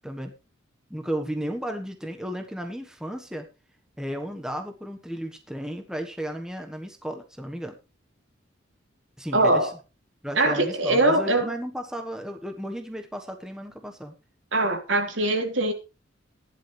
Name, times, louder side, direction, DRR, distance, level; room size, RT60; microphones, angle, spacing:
voice 1, 0.0-0.3 0.9-3.5 4.0-7.7 9.2-9.7 10.2-14.1, equal, 5° right, 1.3 m, -34 dB
voice 2, 9.3-9.7 10.3-11.5 14.5-15.7, right 2 dB, 70° right, 3.2 m, -22 dB
15.5 x 11.0 x 3.3 m
head